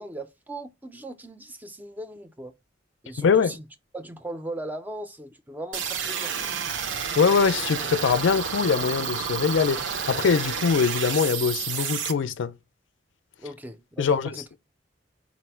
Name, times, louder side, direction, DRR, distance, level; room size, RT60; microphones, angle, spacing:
voice 1, 0.0-2.5 3.0-3.7 3.9-6.5 13.4-14.5, right 1 dB, 10° right, 0.4 m, -38 dB
voice 2, 3.2-3.6 7.2-12.5 14.0-14.3, left 6 dB, 80° left, 0.4 m, -23 dB
sound 1, 5.7-12.1, right 7 dB, 80° right, 0.6 m, -30 dB
4.1 x 2.0 x 4.3 m
head